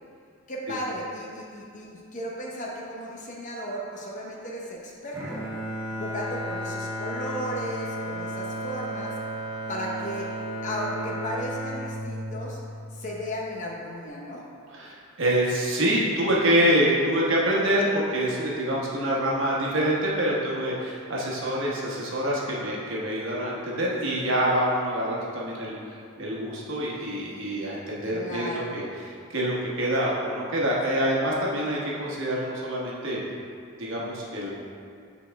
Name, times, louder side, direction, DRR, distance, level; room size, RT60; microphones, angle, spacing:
voice 1, 0.5-5.4 6.0-9.2 9.7-10.3 10.6-12.6 12.9-14.5 28.1-28.9, equal, 35° left, -2 dB, 0.8 m, -35 dB
Bowed string instrument, 5.1-13.4, right 1 dB, 15° right, 1.3 m, -34 dB
voice 2, 14.7-25.7 26.2-33.2 33.8-34.5, equal, 60° right, -5 dB, 1.2 m, -26 dB
8.6 x 4.1 x 3.4 m, 2.3 s
head